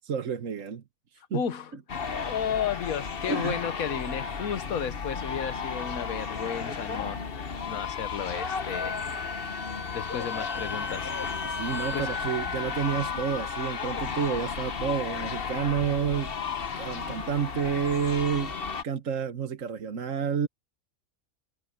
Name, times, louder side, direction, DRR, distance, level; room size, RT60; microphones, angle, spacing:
voice 1, 0.0-0.8 1.3-1.4 3.3-3.6 11.4-16.4 16.8-18.5 18.8-20.5, right 7 dB, 70° right, 1.6 m, -29 dB
voice 2, 1.3-1.7 2.3-9.0 9.9-11.1 11.9-12.1 13.4-13.5, left 8 dB, 85° left, 1.5 m, -33 dB
sound 1, 1.9-18.8, left 6 dB, 45° left, 1.2 m, -34 dB
Wind instrument woodwind instrument, 8.7-13.9, left 3 dB, 70° left, 2.6 m, -37 dB
omnidirectional pair, 1.4 m